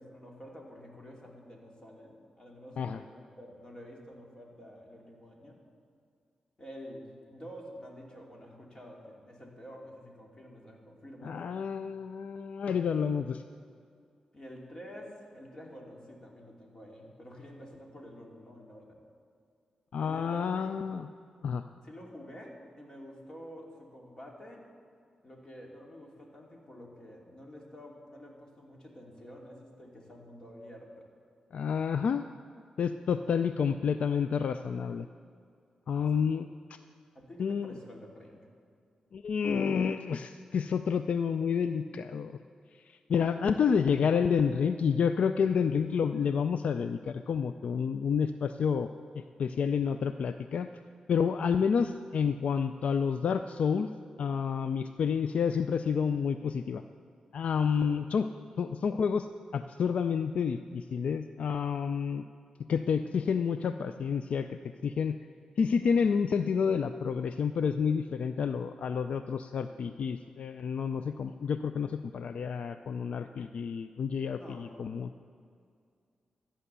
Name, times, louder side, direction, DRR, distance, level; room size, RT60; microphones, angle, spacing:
voice 1, 0.0-5.6 6.6-11.4 14.3-19.0 20.0-20.8 21.8-24.6 25.2-31.1 36.0-36.1 37.1-38.5 43.4-43.5 57.8-58.0 74.3-75.0, equal, 35° left, -1 dB, 2.7 m, -49 dB
voice 2, 11.2-13.4 19.9-21.1 21.4-21.6 31.5-32.3 32.8-35.1 35.9-36.8 37.4-37.7 39.1-42.4 42.9-48.9 49.1-50.7 51.1-53.9 54.2-56.8 57.3-58.3 58.6-59.3 59.5-62.2 62.7-65.1 65.6-75.1, left 6 dB, 70° left, 10 dB, 0.4 m, -29 dB
14.0 x 8.9 x 6.8 m, 2.3 s
cardioid pair, 80°, 2 cm